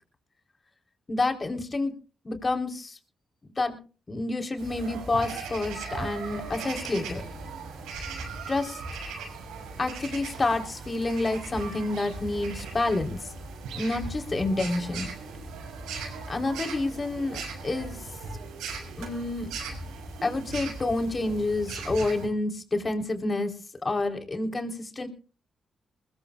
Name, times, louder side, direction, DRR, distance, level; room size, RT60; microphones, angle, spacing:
voice 1, 1.1-1.9 2.2-3.0 3.6-3.8 4.1-7.3 8.5-8.8 9.8-13.2 13.7-15.1 16.3-18.0 19.0-19.5 20.2-23.5 23.8-25.1, left 2 dB, 40° left, 4 dB, 3.9 m, -28 dB
sound 1, 4.6-22.3, right 4 dB, 80° right, 6.1 m, -38 dB
22.5 x 20.5 x 2.4 m, 0.37 s
hypercardioid pair, 40°, 0 cm